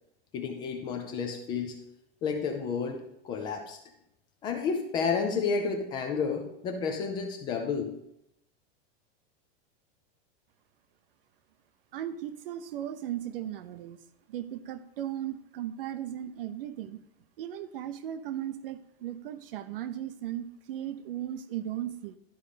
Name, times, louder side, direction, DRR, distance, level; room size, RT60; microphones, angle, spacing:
voice 1, 0.3-1.8 2.2-3.8 4.4-7.9, left 5 dB, 15° left, 4 dB, 0.4 m, -31 dB
voice 2, 11.9-14.0 14.3-17.0 17.4-22.2, right 11 dB, 65° right, 12 dB, 0.8 m, -37 dB
11.5 x 5.2 x 5.0 m, 0.78 s
supercardioid pair, 180°, 31 cm